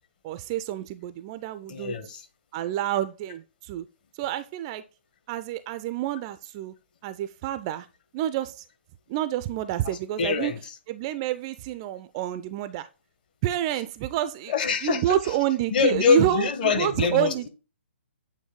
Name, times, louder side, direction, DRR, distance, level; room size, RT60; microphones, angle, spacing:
voice 1, 0.2-2.0 2.5-3.9 4.2-4.8 5.3-6.7 7.0-7.9 8.1-8.6 9.1-10.5 10.9-12.9 13.4-14.5 14.8-17.5, right 12 dB, 25° right, 0.3 m, -28 dB
voice 2, 1.7-2.3 10.2-10.7 14.5-15.4 15.7-17.5, left 6 dB, 40° left, 1.1 m, -24 dB
8.5 x 3.1 x 3.6 m
figure-of-eight pair, 130°, 7 cm